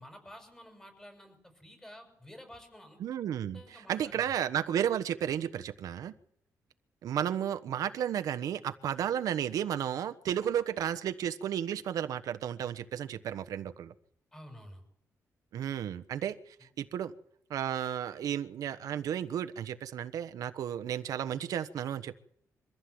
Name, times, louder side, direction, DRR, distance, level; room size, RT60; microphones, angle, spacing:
voice 1, 0.0-3.0 3.5-4.3 14.3-14.8 16.6-16.7, equal, 10° left, 6 dB, 6.0 m, -51 dB
voice 2, 3.0-6.1 7.0-13.9 15.5-16.4 16.8-17.1 17.5-22.2, right 9 dB, 85° right, 10 dB, 1.2 m, -33 dB
24.0 x 15.0 x 7.9 m, 0.69 s
wide cardioid pair, 155°, 6 cm